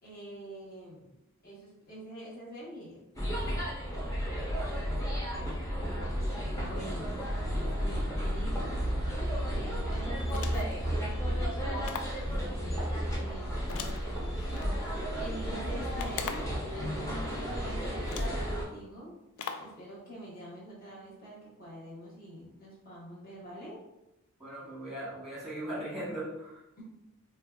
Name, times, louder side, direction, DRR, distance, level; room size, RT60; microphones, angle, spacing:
voice 1, 0.0-1.1 1.4-3.0 5.5-7.2 7.5-14.4 15.2-19.2 19.6-23.8 26.8-26.9, right 1 dB, 40° left, -6 dB, 1.1 m, -46 dB
sound 1, 3.2-18.6, equal, 15° left, 0.7 m, -33 dB
sound 2, 10.3-10.8 11.8-12.2 13.7-14.7 16.0-16.6 17.5-17.6 18.1-18.4 19.4-19.8, left 6 dB, 70° left, 0.3 m, -40 dB
voice 2, 24.4-26.6, right 1 dB, 5° right, -7 dB, 1.0 m, -38 dB
4.3 x 2.3 x 2.3 m, 0.92 s
head